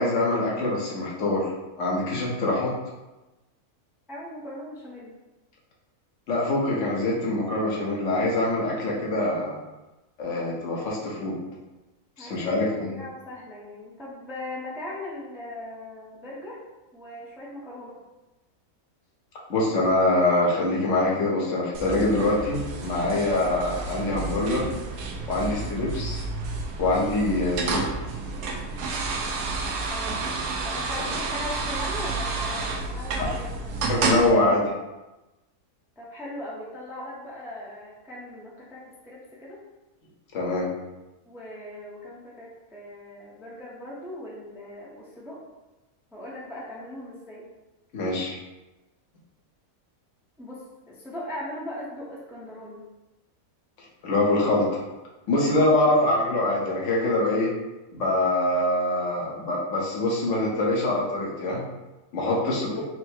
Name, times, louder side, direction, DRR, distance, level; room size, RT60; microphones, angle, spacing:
voice 1, 0.0-2.7 6.3-9.6 10.2-11.4 12.2-12.9 19.5-24.7 25.3-26.3 26.8-27.8 33.9-34.7 40.3-40.7 47.9-48.4 54.0-54.8 55.3-57.5 57.9-61.6 62.1-62.7, left 2 dB, 60° left, -4 dB, 1.3 m, -24 dB
voice 2, 4.1-5.2 12.2-16.6 16.9-18.0 25.5-25.6 29.9-30.2 30.6-33.8 36.0-39.6 41.3-45.4 46.1-47.4 50.4-52.9 55.4-56.1 62.4-62.9, left 1 dB, ahead, -5 dB, 0.7 m, -39 dB
sound 1, 21.7-34.3, right 3 dB, 80° right, 1.1 m, -30 dB
4.3 x 2.2 x 4.5 m, 1.0 s
omnidirectional pair, 1.5 m